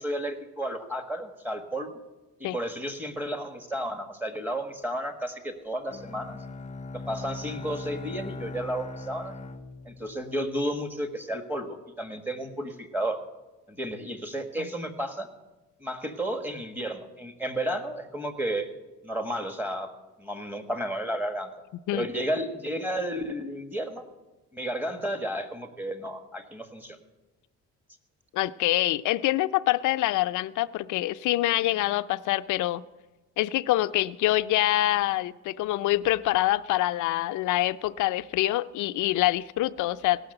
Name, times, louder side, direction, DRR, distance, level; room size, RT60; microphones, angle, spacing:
voice 1, 0.0-2.0 2.4-6.4 6.9-9.3 9.8-13.2 13.7-15.3 15.8-18.7 19.0-19.9 20.2-21.5 21.9-24.0 24.5-27.0, right 1 dB, 5° right, 4 dB, 1.5 m, -32 dB
Bowed string instrument, 5.9-10.9, left 3 dB, 25° left, 0.6 m, -40 dB
voice 2, 28.3-32.8 33.4-40.2, left 16 dB, 80° left, 14 dB, 0.5 m, -25 dB
17.0 x 6.3 x 7.8 m, 1.1 s
cardioid pair, 90°, 30 cm